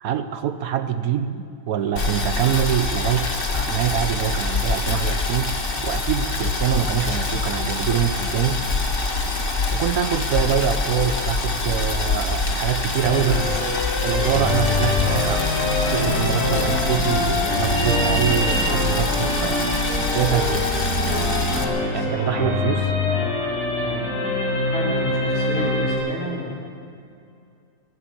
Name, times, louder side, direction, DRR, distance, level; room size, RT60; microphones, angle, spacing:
voice 1, 0.0-3.3 3.5-5.6 5.8-8.6 9.7-13.6 14.0-19.8 20.1-20.7 21.9-22.9, right 9 dB, 70° right, 9 dB, 1.1 m, -25 dB
Boiling, 2.0-21.6, left 3 dB, 40° left, 1.5 m, -25 dB
sound 1, 13.0-26.0, left 2 dB, 75° left, 4.8 m, -24 dB
voice 2, 21.5-22.8 23.8-24.1 24.6-26.5, equal, 60° left, -5 dB, 4.0 m, -33 dB
20.5 x 8.1 x 8.5 m, 2.5 s
omnidirectional pair, 1.6 m